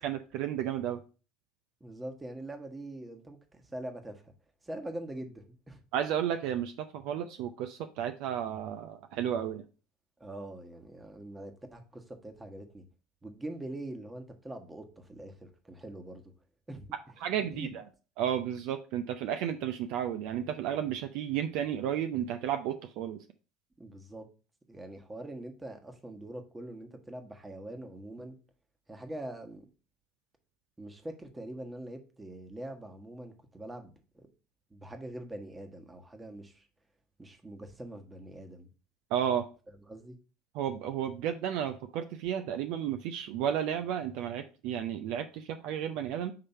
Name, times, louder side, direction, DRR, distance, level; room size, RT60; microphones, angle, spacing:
voice 1, 0.0-1.0 5.9-9.6 17.2-17.8 18.2-23.2 39.1-39.5 40.5-46.3, right 9 dB, 60° right, 8 dB, 0.5 m, -32 dB
voice 2, 1.8-4.3 4.6-5.8 10.2-12.8 13.2-16.2 16.7-17.0 17.5-17.7 23.8-24.3 24.7-28.4 28.9-29.7 30.8-34.3 34.7-36.7 37.2-38.7 39.9-40.2, right 1 dB, 15° right, 5 dB, 1.2 m, -43 dB
5.7 x 3.3 x 5.4 m, 0.34 s
hypercardioid pair, 70°, 0 cm